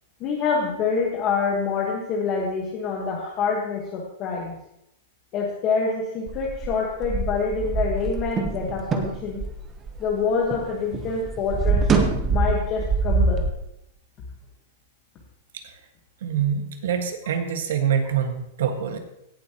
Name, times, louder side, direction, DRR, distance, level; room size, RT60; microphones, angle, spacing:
voice 1, 0.2-4.5 5.3-9.4 10.0-11.9 12.3-13.4, left 5 dB, 25° left, -1 dB, 1.4 m, -26 dB
sound 1, 6.3-10.7 10.9-13.5, right 4 dB, 15° right, 0.9 m, -24 dB
voice 2, 16.2-19.0, right 8 dB, 80° right, 5 dB, 1.7 m, -25 dB
17.0 x 7.5 x 3.0 m, 0.80 s
supercardioid pair, 170°, 0 cm